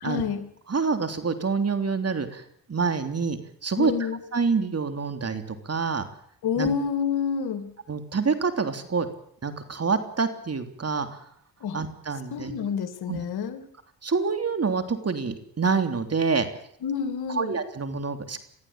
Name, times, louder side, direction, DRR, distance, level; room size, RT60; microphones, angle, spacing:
voice 1, 0.0-0.4 3.8-4.2 6.4-7.7 11.6-11.8 12.3-13.6 16.8-17.5, left 7 dB, 80° left, 10 dB, 2.5 m, -28 dB
voice 2, 0.7-3.9 4.3-6.1 6.6-6.7 7.9-9.1 9.4-11.2 11.7-12.5 13.1-13.2 14.0-16.5 17.3-18.4, right 5 dB, 40° right, 8 dB, 3.5 m, -27 dB
23.5 x 14.5 x 8.9 m, 0.66 s
supercardioid pair, 55°, 38 cm